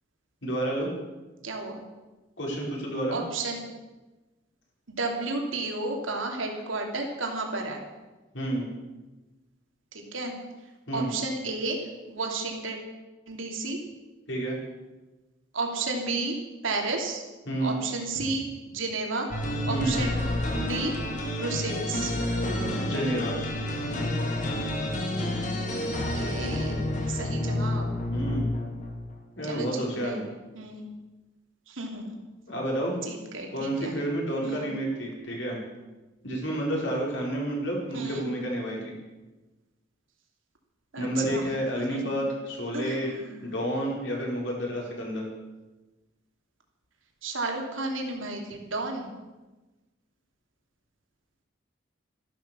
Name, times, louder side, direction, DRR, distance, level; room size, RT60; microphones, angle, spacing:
voice 1, 0.4-0.9 2.4-3.2 8.3-8.7 10.9-11.1 14.3-14.6 17.4-17.8 19.7-20.0 22.8-23.4 28.1-28.5 29.4-30.3 32.5-33.0 33.5-35.6 36.2-39.0 41.0-43.1 43.4-45.2, right 1 dB, 65° left, -2 dB, 4.8 m, -30 dB
voice 2, 1.4-1.8 3.1-3.6 4.9-7.8 9.9-10.3 10.9-12.8 13.3-13.8 15.5-16.4 16.6-17.2 17.6-19.3 19.7-20.1 20.5-21.0 21.4-22.1 26.1-26.8 27.1-27.9 29.4-30.2 30.5-30.9 31.7-32.2 33.0-34.0 34.4-34.7 37.9-38.3 40.9-41.5 41.7-42.1 42.7-43.3 47.2-49.1, right 3 dB, 80° right, 2 dB, 2.9 m, -32 dB
sound 1, 19.3-29.1, left 1 dB, 40° left, 2.2 m, -29 dB
13.5 x 12.0 x 6.9 m, 1.1 s
head